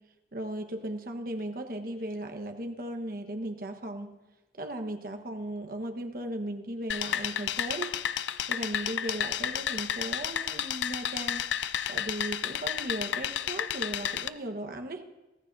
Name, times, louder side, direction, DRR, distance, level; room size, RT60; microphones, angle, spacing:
voice 1, 0.3-4.1 4.6-8.0 8.5-11.4 11.9-15.0, right 1 dB, 55° right, 5 dB, 1.3 m, -36 dB
sound 1, 6.9-14.3, left 9 dB, 85° left, 0.5 m, -32 dB
24.0 x 15.0 x 2.7 m, 1.0 s
head